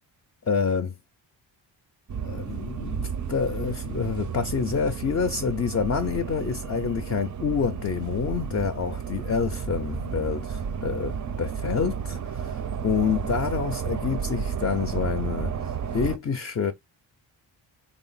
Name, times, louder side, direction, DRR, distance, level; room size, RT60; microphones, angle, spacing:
voice 1, 0.5-0.9 2.2-16.7, left 6 dB, 30° left, 0.4 m, -28 dB
sound 1, 2.1-16.2, right 7 dB, 40° right, 0.4 m, -32 dB
3.6 x 2.0 x 3.8 m
cardioid pair, 75°, 48 cm